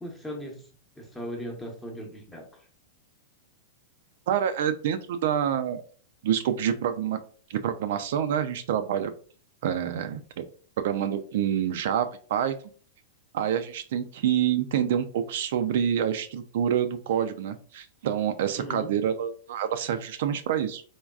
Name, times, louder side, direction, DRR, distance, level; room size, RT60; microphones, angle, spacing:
voice 1, 0.0-0.7 1.0-2.5 18.5-18.9, equal, 10° left, 0.8 m, -38 dB
voice 2, 4.3-5.8 6.2-7.2 7.5-9.1 9.6-10.4 10.8-12.5 13.3-20.8, right 9 dB, 65° right, 0.3 m, -27 dB
3.4 x 2.2 x 2.3 m
hypercardioid pair, 115°, 0 cm